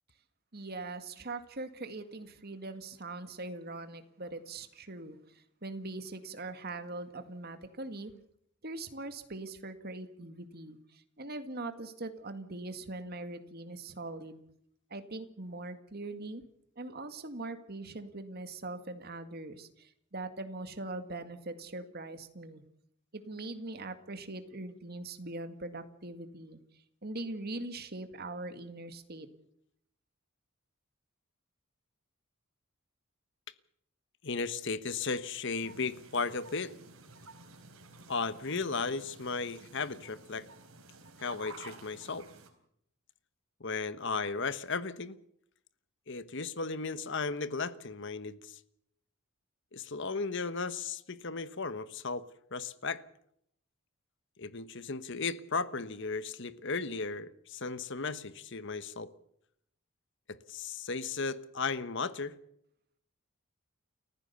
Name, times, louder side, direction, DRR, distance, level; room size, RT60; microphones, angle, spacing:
voice 1, 0.5-8.1 8.6-14.4 14.9-16.4 16.8-22.6 23.1-26.6 27.0-29.3, right 2 dB, 45° right, 2.0 m, -41 dB
voice 2, 34.2-36.7 38.1-40.5 41.2-42.3 43.6-45.2 46.1-48.6 49.7-52.2 52.5-53.0 54.4-59.1 60.3-62.3, left 4 dB, 55° left, 1.2 m, -35 dB
sound 1, 35.6-42.5, right 3 dB, 70° right, 3.9 m, -52 dB
30.0 x 15.0 x 6.9 m
head